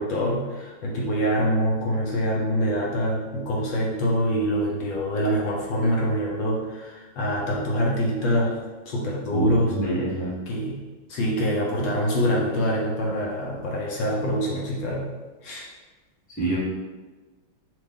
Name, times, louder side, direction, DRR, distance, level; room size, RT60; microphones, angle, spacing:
voice 1, 0.0-8.6 8.9-9.8 10.5-10.8 11.1-15.1 15.4-15.7, equal, 65° left, -3 dB, 1.3 m, -25 dB
voice 2, 9.3-10.3 16.4-16.6, right 2 dB, 5° left, -7 dB, 0.8 m, -26 dB
6.0 x 2.5 x 3.5 m, 1.3 s
omnidirectional pair, 2.4 m